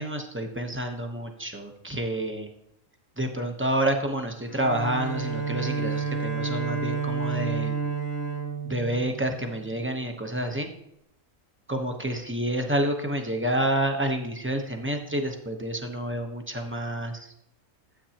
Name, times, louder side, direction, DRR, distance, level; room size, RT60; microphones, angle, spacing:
voice 1, 0.0-2.5 3.2-7.8 8.6-10.7 11.7-17.3, right 1 dB, 10° right, 3 dB, 0.8 m, -29 dB
Bowed string instrument, 4.4-9.7, right 5 dB, 50° left, 1.4 m, -30 dB
12.5 x 8.1 x 2.9 m, 0.77 s
omnidirectional pair, 1.4 m